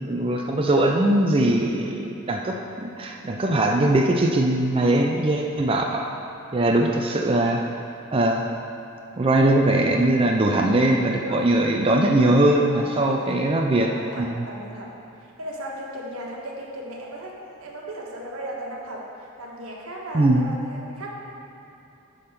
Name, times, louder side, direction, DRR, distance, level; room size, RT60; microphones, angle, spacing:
voice 1, 0.0-6.1 6.5-7.6 8.1-8.5 9.2-14.5 20.1-20.5, right 1 dB, 25° right, 1 dB, 0.5 m, -21 dB
voice 2, 11.2-11.5 12.7-13.3 13.8-14.9 15.4-21.1, right 1 dB, 85° right, -2 dB, 1.4 m, -36 dB
10.0 x 3.8 x 6.6 m, 2.8 s
head